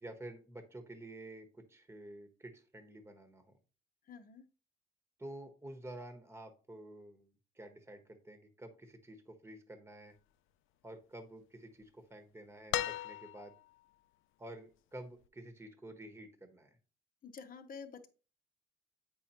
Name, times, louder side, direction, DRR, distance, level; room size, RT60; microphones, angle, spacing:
voice 1, 0.0-3.5 5.2-10.1 10.8-13.5 14.4-16.8, right 1 dB, 10° right, 6 dB, 1.2 m, -50 dB
voice 2, 4.1-4.4 17.2-18.1, left 5 dB, 45° left, 6 dB, 0.9 m, -49 dB
sound 1, 12.7-13.7 15.2-15.3, left 13 dB, 85° left, 0.4 m, -37 dB
7.9 x 5.5 x 2.9 m, 0.35 s
cardioid pair, 90°, 20 cm